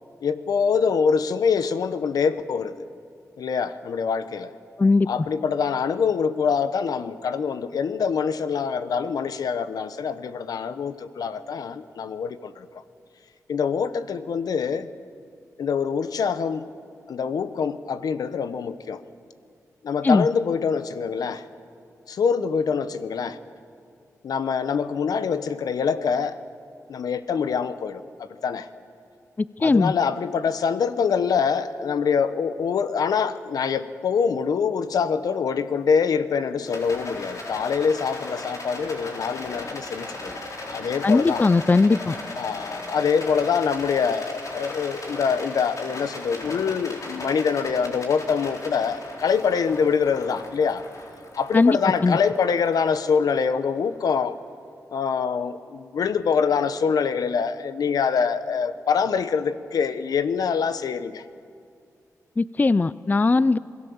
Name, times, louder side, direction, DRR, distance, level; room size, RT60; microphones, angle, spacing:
voice 1, 0.2-2.7 3.4-4.5 5.1-12.7 13.5-14.9 15.6-16.7 17.1-19.0 19.8-21.4 22.1-23.4 24.2-26.3 26.9-28.7 29.6-40.4 40.7-41.5 42.3-50.8 51.4-54.4 54.9-61.2, left 6 dB, 80° left, 12 dB, 0.9 m, -25 dB
voice 2, 29.4-29.9 41.0-42.2 51.5-52.2 62.4-63.6, left 3 dB, 30° left, 17 dB, 0.4 m, -19 dB
Rattle, 36.6-54.0, left 2 dB, 55° left, 4.0 m, -37 dB
27.0 x 17.5 x 7.1 m, 2.3 s
cardioid pair, 70°, 6 cm